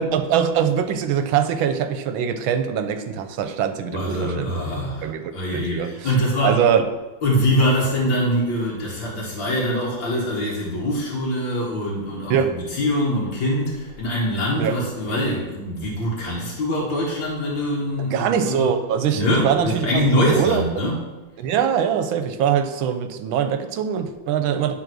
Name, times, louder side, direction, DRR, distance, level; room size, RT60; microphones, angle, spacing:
voice 1, 0.0-4.5 5.0-5.9 6.4-6.9 12.3-12.5 14.6-14.8 18.0-20.6 21.4-24.8, right 8 dB, 85° right, 9 dB, 1.5 m, -22 dB
voice 2, 3.9-6.6 7.2-18.7 19.1-21.1, equal, 75° left, -5 dB, 2.3 m, -23 dB
9.9 x 3.9 x 6.1 m, 1.1 s
omnidirectional pair, 2.1 m